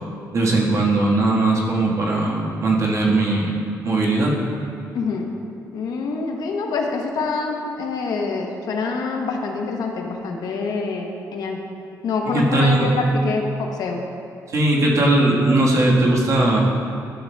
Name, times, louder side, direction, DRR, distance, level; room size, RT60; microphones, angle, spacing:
voice 1, 0.3-3.5 3.8-4.4 12.3-12.9 14.5-16.6, right 2 dB, 50° right, -3 dB, 1.4 m, -19 dB
voice 2, 4.9-5.3 5.7-11.6 12.0-14.0, left 4 dB, 75° left, 2 dB, 0.8 m, -26 dB
11.5 x 7.0 x 2.2 m, 2.6 s
cardioid pair, 100°, 7 cm